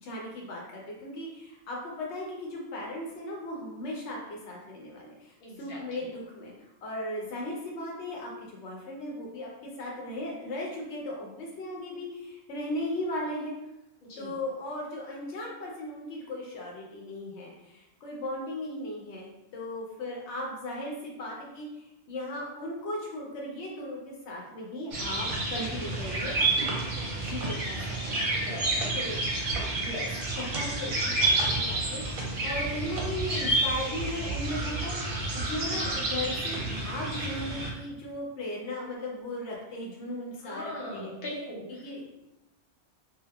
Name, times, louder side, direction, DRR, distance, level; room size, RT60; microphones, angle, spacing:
voice 1, 0.0-9.5 9.8-13.5 14.2-26.9 27.2-28.2 28.9-29.2 29.8-30.1 30.4-35.0 35.3-41.1 41.8-42.1, left 1 dB, 85° left, -2 dB, 0.9 m, -37 dB
voice 2, 5.4-6.1 14.0-14.3 28.3-28.9 40.4-41.8, left 1 dB, 55° left, -5 dB, 0.9 m, -40 dB
sound 1, 24.9-37.7, right 2 dB, 60° right, 0.7 m, -30 dB
2.8 x 2.0 x 2.2 m, 0.94 s
omnidirectional pair, 1.1 m